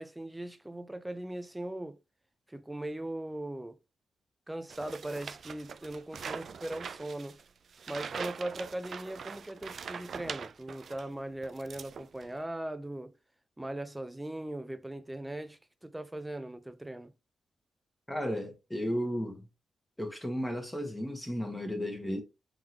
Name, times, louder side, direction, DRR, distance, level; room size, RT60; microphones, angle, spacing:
voice 1, 0.0-2.0 2.5-3.8 4.5-7.4 7.9-13.1 13.6-17.1, right 1 dB, 10° right, 0.6 m, -39 dB
sound 1, 4.7-11.1 11.4-12.4, right 6 dB, 60° right, 0.3 m, -42 dB
voice 2, 18.1-19.4 20.0-22.2, equal, 10° left, 1.3 m, -34 dB
3.7 x 3.6 x 2.9 m
cardioid pair, 90°, 0 cm